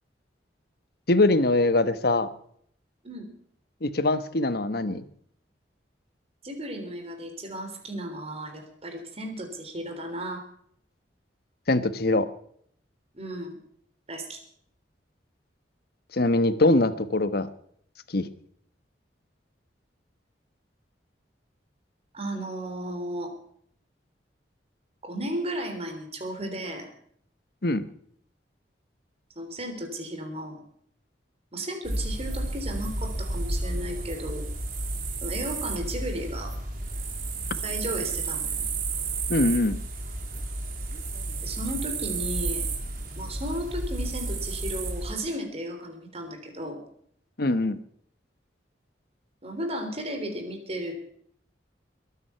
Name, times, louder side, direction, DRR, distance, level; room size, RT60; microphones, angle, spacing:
voice 1, 1.1-2.3 3.8-5.0 11.7-12.3 16.1-17.5 18.1-18.3 27.6-27.8 39.3-39.8 47.4-47.8, left 2 dB, 60° left, 12 dB, 1.2 m, -22 dB
voice 2, 6.4-10.4 13.1-13.6 14.1-14.4 22.1-23.3 25.0-26.9 29.4-30.6 31.5-34.4 35.2-36.5 37.5-38.7 41.4-42.7 43.2-46.8 49.4-51.0, right 1 dB, 35° right, 4 dB, 3.6 m, -34 dB
sound 1, 31.8-45.1, right 3 dB, 55° right, 3.2 m, -32 dB
22.0 x 9.8 x 5.8 m, 0.64 s
head